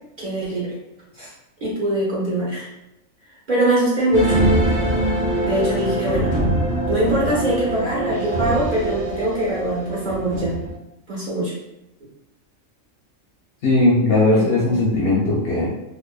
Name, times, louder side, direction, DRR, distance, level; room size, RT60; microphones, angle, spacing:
voice 1, 0.2-0.8 1.1-1.3 1.6-2.7 3.5-4.4 5.4-6.4 6.9-10.6 11.1-11.5 14.3-15.0, right 1 dB, 45° right, -7 dB, 0.7 m, -23 dB
sound 1, 4.1-10.7, right 1 dB, 5° left, 0.9 m, -23 dB
voice 2, 13.6-15.7, left 2 dB, 60° left, -5 dB, 0.7 m, -18 dB
2.5 x 2.4 x 2.3 m, 0.89 s
omnidirectional pair, 1.4 m